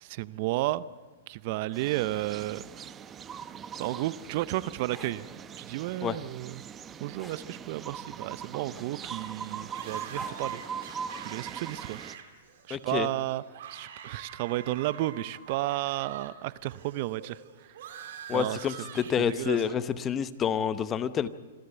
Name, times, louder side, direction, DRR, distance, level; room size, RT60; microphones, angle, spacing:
voice 1, 0.0-0.9 1.3-2.9 3.8-5.2 5.6-6.6 7.0-10.6 11.1-12.0 12.7-13.4 13.7-17.4 17.9-18.0 18.3-18.6 19.3-19.6, right 16 dB, 50° right, 18 dB, 0.6 m, -32 dB
sound 1, 1.7-12.2, right 7 dB, 20° right, 0.8 m, -41 dB
sound 2, 4.9-5.2 7.2-7.4 8.7-9.2 10.1-10.5 11.9-12.1, equal, ahead, 3.0 m, -47 dB
sound 3, 9.7-16.3 16.6-19.8, right 8 dB, 65° right, 3.5 m, -46 dB
voice 2, 12.7-13.1 18.3-21.3, left 8 dB, 25° left, 14 dB, 0.9 m, -28 dB
27.0 x 13.0 x 8.0 m, 1.4 s
hypercardioid pair, 130°, 0 cm